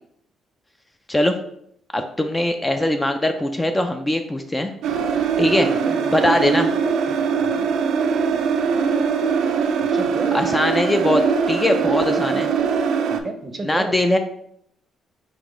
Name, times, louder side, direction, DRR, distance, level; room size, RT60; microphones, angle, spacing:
voice 1, 1.9-4.7 5.4-5.7 6.1-6.7 10.3-11.2 11.5-12.5 13.6-14.2, left 1 dB, 15° left, 6 dB, 0.3 m, -21 dB
sound 1, 4.8-13.2, right 6 dB, 80° right, 0.4 m, -21 dB
voice 2, 5.5-6.4 7.1-7.7 9.8-10.4 12.2-12.4 13.1-13.9, right 2 dB, 30° right, 7 dB, 0.6 m, -33 dB
3.6 x 2.9 x 3.7 m, 0.72 s
cardioid pair, 90°, 0 cm